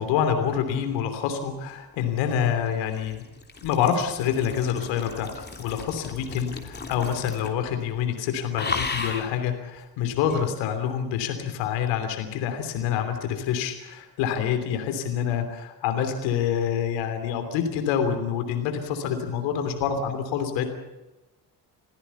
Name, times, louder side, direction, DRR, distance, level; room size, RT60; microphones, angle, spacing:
voice 1, 0.0-3.2 3.6-20.7, left 8 dB, 60° left, 7 dB, 3.2 m, -27 dB
sound 1, 1.9-7.7 7.9-8.2 8.5-9.4 10.3-10.4, left 4 dB, 20° left, 3.2 m, -35 dB
27.0 x 16.5 x 7.1 m, 1.1 s
figure-of-eight pair, 50°, 50 cm